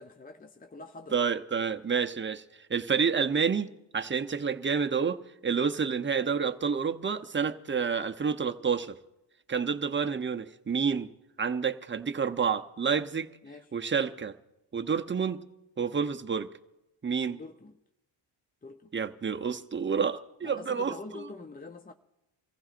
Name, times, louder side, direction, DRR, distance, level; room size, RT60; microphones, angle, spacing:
voice 1, 0.0-1.2 13.4-13.7 17.3-17.7 18.6-18.9 20.4-21.9, left 3 dB, 20° left, 0.5 m, -45 dB
voice 2, 1.1-2.4 2.7-3.7 3.9-5.2 5.4-8.9 9.5-11.1 11.4-13.3 13.7-14.3 14.7-15.4 15.8-16.5 17.0-17.4 18.9-21.0, right 6 dB, 25° right, 0.7 m, -29 dB
26.0 x 15.0 x 2.5 m
cardioid pair, 85°, 49 cm